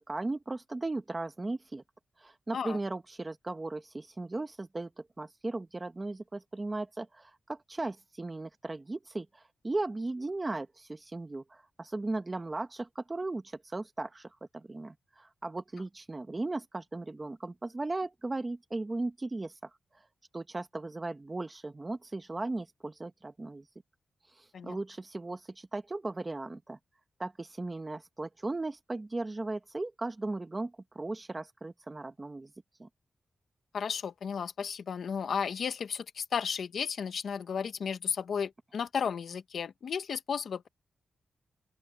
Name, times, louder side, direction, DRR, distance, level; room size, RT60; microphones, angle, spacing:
voice 1, 0.0-1.8 2.2-4.9 5.2-19.7 20.3-23.6 24.3-26.8 27.2-32.5 32.8-32.9, right 2 dB, 20° right, 1.2 m, -37 dB
voice 2, 33.7-40.7, left 6 dB, 75° left, 1.7 m, -34 dB
open air
wide cardioid pair, 140°, 0 cm